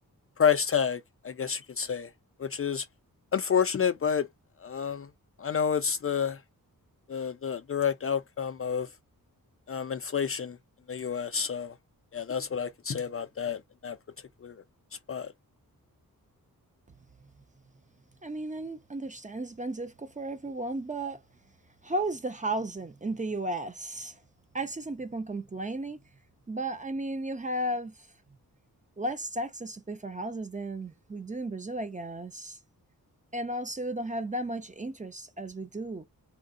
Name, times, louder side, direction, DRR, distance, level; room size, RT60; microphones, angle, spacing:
voice 1, 0.4-2.1 2.4-2.9 3.3-4.3 4.6-5.1 5.4-6.4 7.1-8.9 9.7-10.6 10.9-11.7 12.1-14.0 14.4-14.6 15.1-15.3, left 7 dB, 40° left, 0.4 m, -29 dB
voice 2, 18.2-21.2 21.8-24.2 24.5-26.0 26.5-28.1 29.0-32.6 33.3-36.0, right 1 dB, 20° right, 0.5 m, -34 dB
3.7 x 2.0 x 2.5 m
wide cardioid pair, 100°, 35 cm